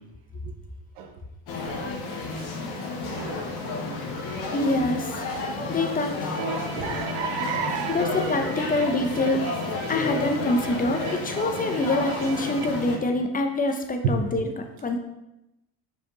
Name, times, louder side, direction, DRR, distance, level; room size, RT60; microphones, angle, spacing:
sound 1, 1.5-13.0, left 3 dB, 60° left, 1.4 m, -31 dB
voice 1, 3.0-3.6 5.2-5.6 6.7-8.6 14.0-14.2, right 5 dB, 85° right, 1.0 m, -31 dB
voice 2, 4.5-5.2 5.7-6.4 7.9-9.4 9.9-15.0, left 2 dB, 20° left, 0.8 m, -25 dB
Bowed string instrument, 6.3-13.0, right 6 dB, 55° right, 0.8 m, -40 dB
5.1 x 4.8 x 4.0 m
cardioid pair, 105°, 43 cm